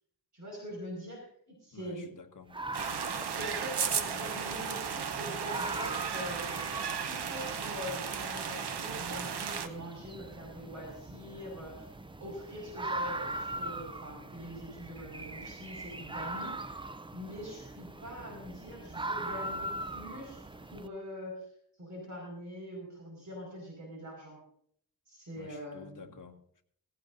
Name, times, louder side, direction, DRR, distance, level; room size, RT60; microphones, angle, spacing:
voice 1, 0.3-2.1 3.0-11.9 12.2-16.8 17.1-21.4 21.8-24.4 25.1-26.1, equal, 45° right, -1 dB, 5.1 m, -43 dB
voice 2, 1.7-2.6 25.3-26.6, left 5 dB, 50° left, 4 dB, 1.3 m, -51 dB
sound 1, 2.5-20.9, right 2 dB, 15° right, 0.5 m, -41 dB
sound 2, 2.7-9.7, right 7 dB, 85° right, 1.0 m, -35 dB
16.5 x 16.0 x 2.6 m, 0.65 s
wide cardioid pair, 130°, 39 cm